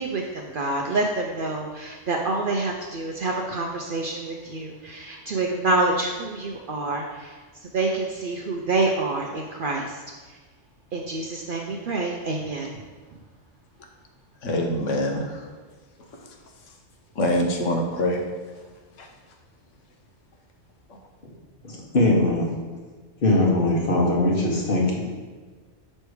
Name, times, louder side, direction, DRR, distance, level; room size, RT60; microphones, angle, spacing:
voice 1, 0.0-7.4 7.7-10.0 10.9-12.8, right 2 dB, 60° right, 0 dB, 0.6 m, -27 dB
voice 2, 14.4-15.4 17.2-18.2 19.0-19.1, left 1 dB, 75° left, 3 dB, 1.1 m, -24 dB
voice 3, 21.6-22.5 23.2-25.0, left 2 dB, 50° left, -1 dB, 1.1 m, -21 dB
6.4 x 3.2 x 4.7 m, 1.4 s
omnidirectional pair, 1.3 m